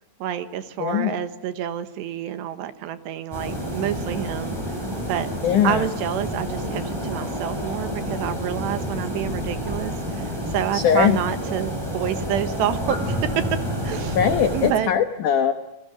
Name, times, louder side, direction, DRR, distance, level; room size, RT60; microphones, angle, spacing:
voice 1, 0.2-4.6 5.1-5.3 5.6-13.3 13.8-14.2 14.5-14.9, right 11 dB, 75° right, 10 dB, 3.2 m, -28 dB
voice 2, 0.8-1.2 5.4-5.9 10.7-11.2 14.1-15.5, left 8 dB, 80° left, 8 dB, 1.8 m, -20 dB
sound 1, 3.3-14.7, equal, 5° right, 7.0 m, -29 dB
29.0 x 20.0 x 9.9 m, 0.90 s
omnidirectional pair, 5.4 m